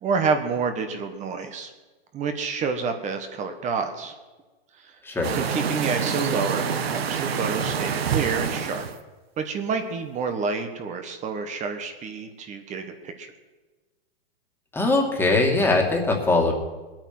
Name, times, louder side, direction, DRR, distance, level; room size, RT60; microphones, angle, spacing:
voice 1, 0.0-1.7 2.1-4.1 4.8-4.9 5.3-8.8 9.4-13.3, right 5 dB, 25° right, 6 dB, 1.4 m, -28 dB
sound 1, 5.2-9.0, right 7 dB, 85° right, 1.4 m, -27 dB
voice 2, 14.7-16.5, left 2 dB, 5° left, 0 dB, 2.4 m, -21 dB
20.0 x 9.0 x 6.1 m, 1.2 s
hypercardioid pair, 135°, 30 cm